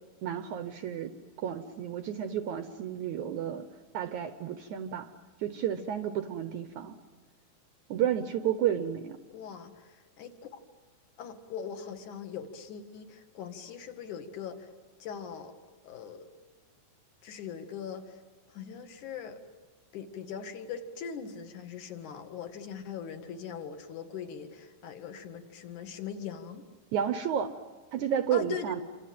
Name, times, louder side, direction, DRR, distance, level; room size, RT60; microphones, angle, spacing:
voice 1, 0.2-1.1 1.4-3.7 3.9-5.1 5.4-7.0 7.9-9.2 26.9-27.6 27.9-28.8, right 9 dB, 70° right, 9 dB, 1.8 m, -31 dB
voice 2, 9.3-10.3 11.2-14.7 15.0-15.5 15.8-16.3 17.2-18.2 18.5-19.4 19.9-26.6 28.3-28.7, left 7 dB, 55° left, 7 dB, 3.0 m, -41 dB
29.0 x 26.0 x 7.7 m, 1.3 s
omnidirectional pair, 4.5 m